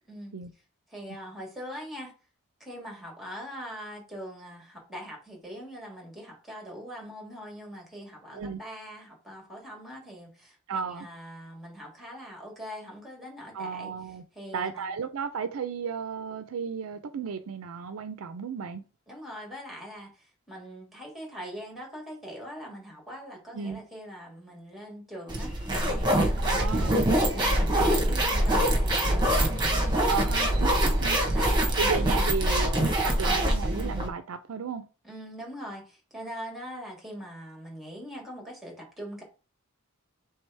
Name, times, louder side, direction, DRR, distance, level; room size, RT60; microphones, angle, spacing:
voice 1, 0.9-2.1 2.6-13.9 14.3-14.9 19.1-26.9 27.3-30.9 31.3-32.6 33.2-33.4 35.0-39.2, equal, ahead, 1.5 m, -42 dB
voice 2, 10.7-11.1 13.5-14.2 14.5-18.8 23.5-23.8 26.5-27.1 30.1-31.2 31.8-34.8, right 6 dB, 70° right, 0.4 m, -34 dB
sound 1, 25.3-34.1, right 1 dB, 20° right, 1.1 m, -24 dB
3.3 x 3.3 x 4.6 m
head